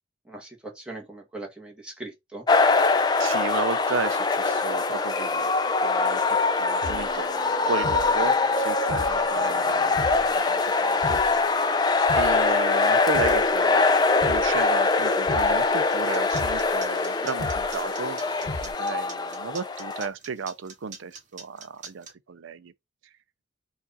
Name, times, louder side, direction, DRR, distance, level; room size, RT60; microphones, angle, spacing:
voice 1, 0.3-2.4, right 2 dB, 5° right, 1.2 m, -40 dB
sound 1, 2.5-20.1, left 3 dB, 20° left, 0.4 m, -23 dB
voice 2, 3.2-5.5 5.8-7.3 7.6-11.2 12.2-13.9 14.2-18.2 18.6-22.7, right 5 dB, 85° right, 0.5 m, -34 dB
sound 2, 6.8-18.7, left 2 dB, 55° left, 0.7 m, -38 dB
sound 3, 15.9-22.1, right 5 dB, 40° right, 1.1 m, -43 dB
4.6 x 2.5 x 4.0 m
head